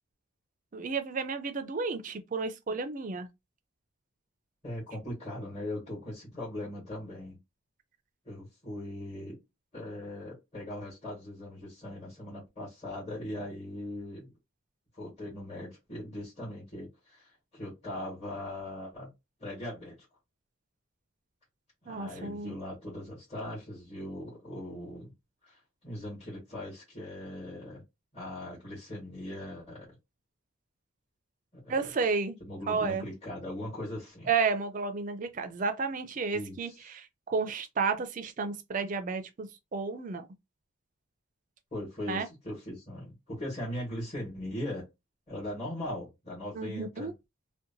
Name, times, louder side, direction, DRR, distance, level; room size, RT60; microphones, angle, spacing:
voice 1, 0.7-3.3 21.9-22.5 31.7-32.4 32.7-33.1 34.3-40.3 42.1-42.3 46.5-47.1, right 4 dB, 40° right, 0.4 m, -32 dB
voice 2, 4.6-7.4 8.2-9.4 9.7-14.3 15.0-19.1 19.4-20.1 21.8-25.1 25.4-27.8 28.1-30.0 31.5-31.9 32.4-34.3 36.3-36.8 41.7-44.9 45.3-47.1, left 1 dB, 30° left, 1.3 m, -40 dB
2.7 x 2.1 x 2.6 m
head